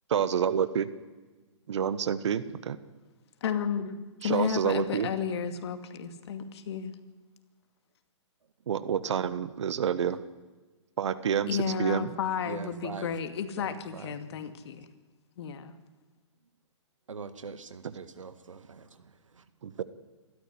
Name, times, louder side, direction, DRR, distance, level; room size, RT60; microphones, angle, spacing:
voice 1, 0.1-0.9 1.7-2.8 4.2-5.1 8.7-10.2 11.0-12.1 17.8-17.9 19.6-19.8, right 8 dB, 65° right, 1.4 m, -28 dB
voice 2, 3.4-3.9 4.2-7.0 11.5-14.9 15.4-15.7, left 7 dB, 60° left, 2.3 m, -32 dB
voice 3, 12.4-13.1 13.6-14.4 17.1-19.4, right 5 dB, 85° right, 1.8 m, -43 dB
26.5 x 13.5 x 10.0 m
hypercardioid pair, 130°, 16 cm